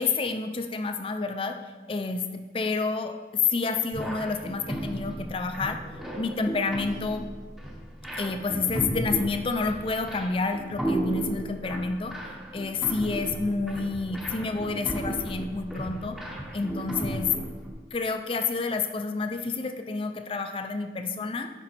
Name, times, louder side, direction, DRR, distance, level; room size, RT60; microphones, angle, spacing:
voice 1, 0.0-1.6 1.9-5.8 6.2-7.3 8.1-12.2 12.5-16.2 16.5-17.3 17.9-21.5, left 4 dB, 30° left, 7 dB, 0.4 m, -29 dB
sound 1, 3.9-17.7, right 1 dB, ahead, 0.7 m, -35 dB
6.8 x 5.2 x 4.4 m, 1.3 s
head